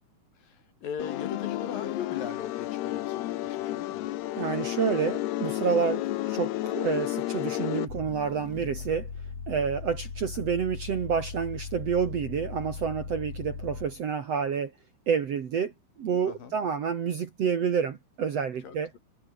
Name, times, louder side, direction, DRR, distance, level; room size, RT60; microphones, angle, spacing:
voice 1, 0.4-4.1 16.3-16.6 18.6-19.0, left 7 dB, 60° left, 4.8 m, -40 dB
sound 1, 1.0-7.9, left 15 dB, 85° left, 3.1 m, -31 dB
voice 2, 4.4-9.1 9.5-14.7 15.1-15.7 16.0-18.9, right 7 dB, 50° right, 2.2 m, -29 dB
sound 2, 7.9-14.1, left 5 dB, 45° left, 5.0 m, -39 dB
omnidirectional pair, 4.6 m